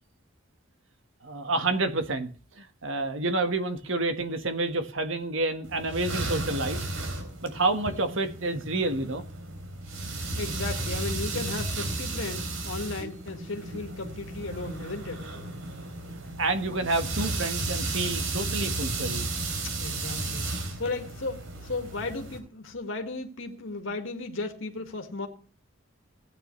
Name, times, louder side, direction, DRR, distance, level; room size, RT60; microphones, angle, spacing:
voice 1, 1.2-2.3 2.6-6.9 7.4-9.2 16.4-19.3, right 2 dB, 70° right, 1.5 m, -29 dB
sound 1, 5.6-22.4, right 2 dB, 85° right, 3.5 m, -34 dB
voice 2, 10.0-15.3 19.6-20.4 20.8-25.3, left 3 dB, 70° left, 1.8 m, -35 dB
16.5 x 9.2 x 3.2 m
head